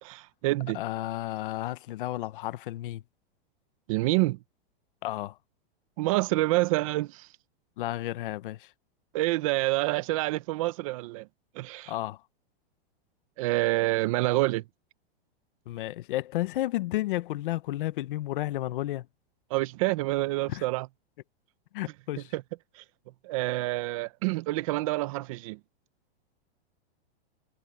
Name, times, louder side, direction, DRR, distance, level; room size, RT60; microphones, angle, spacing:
voice 1, 0.0-0.8 3.9-4.4 6.0-7.3 9.1-11.3 11.5-11.9 13.4-14.6 19.5-20.9 22.3-22.4 22.8-22.9 23.2-25.6, right 19 dB, 35° right, 0.7 m, -27 dB
voice 2, 0.7-3.0 5.0-5.4 7.8-8.7 11.9-12.2 15.7-19.1 20.5-20.6 21.7-22.3, left 15 dB, 55° left, 0.8 m, -32 dB
supercardioid pair, 170°, 31 cm